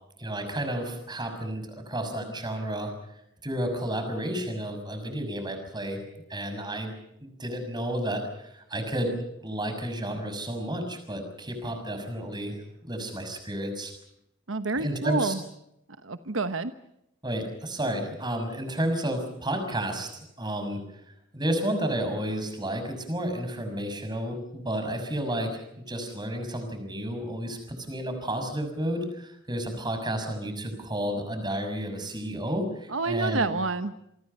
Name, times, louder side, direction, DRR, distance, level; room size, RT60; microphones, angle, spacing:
voice 1, 0.2-2.9 3.4-6.0 6.3-6.9 7.2-12.6 12.8-13.9 14.8-15.3 17.2-20.1 20.4-20.8 21.3-33.5, right 1 dB, 20° right, 7 dB, 6.3 m, -31 dB
voice 2, 14.5-15.4 16.0-16.7 32.9-33.9, right 3 dB, 80° right, 10 dB, 1.2 m, -28 dB
28.0 x 24.5 x 5.5 m, 0.78 s
head